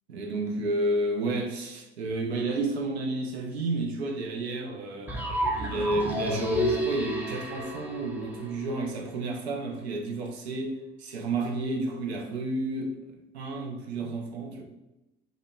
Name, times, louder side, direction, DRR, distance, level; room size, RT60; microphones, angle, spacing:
voice 1, 0.1-5.2 5.5-14.6, right 2 dB, 80° right, 1 dB, 0.5 m, -31 dB
sound 1, 5.1-9.0, equal, 5° right, 0.3 m, -31 dB
2.7 x 2.0 x 2.2 m, 0.97 s
figure-of-eight pair, 60°, 32 cm